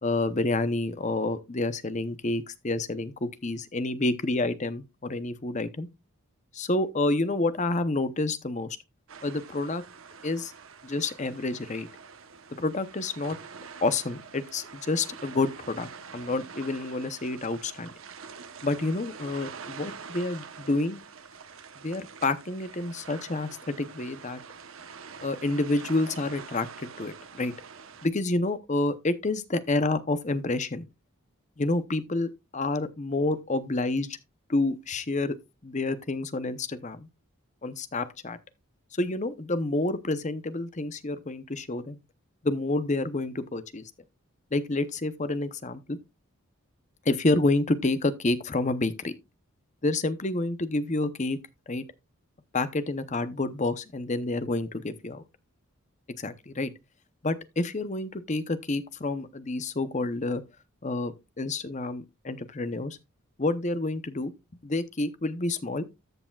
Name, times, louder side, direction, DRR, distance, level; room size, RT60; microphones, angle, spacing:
voice 1, 0.0-5.9 6.5-8.8 9.2-9.8 10.2-10.5 10.8-11.9 12.6-13.4 13.8-17.9 18.6-21.0 21.8-24.4 25.2-27.5 28.0-30.9 31.6-34.2 34.5-35.3 35.6-37.1 37.6-38.4 38.9-42.0 42.4-43.9 44.5-46.0 47.1-49.1 49.8-51.4 51.7-51.8 52.5-55.2 56.2-56.7 57.2-60.4 60.8-63.0 63.4-64.3 64.6-65.9, left 2 dB, 35° left, 0.8 m, -29 dB
sound 1, 9.1-28.1, right 5 dB, 70° right, 1.0 m, -45 dB
13.5 x 6.8 x 2.4 m
head